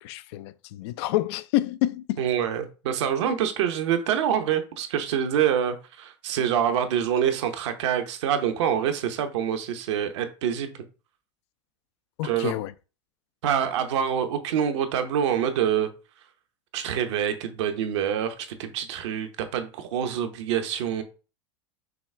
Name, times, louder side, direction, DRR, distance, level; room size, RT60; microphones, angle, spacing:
voice 1, 0.0-2.2 12.2-12.7, left 15 dB, 60° left, 0.4 m, -28 dB
voice 2, 2.2-10.7 12.2-12.5 13.4-15.9 16.7-21.0, right 9 dB, 70° right, 0.9 m, -26 dB
6.1 x 2.3 x 3.3 m
hypercardioid pair, 95°, 16 cm